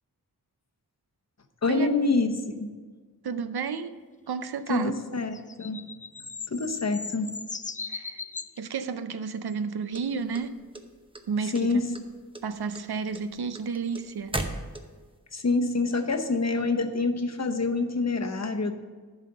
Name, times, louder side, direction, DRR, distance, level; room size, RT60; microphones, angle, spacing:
voice 1, 1.6-2.7 4.7-5.8 6.5-7.3 11.5-11.8 15.3-18.7, left 3 dB, 45° left, 5 dB, 0.9 m, -26 dB
voice 2, 3.2-4.0 4.3-4.9 7.9-8.2 8.6-10.6 11.3-11.8 12.4-14.4, right 5 dB, 80° right, 11 dB, 0.6 m, -31 dB
sound 1, 5.2-8.6 9.5-9.6, left 4 dB, 20° left, 0.3 m, -38 dB
sound 2, 9.9-11.2 11.5-12.1 12.3-15.2, right 1 dB, 15° right, 0.8 m, -35 dB
11.0 x 4.1 x 6.5 m, 1.5 s
wide cardioid pair, 60°, 37 cm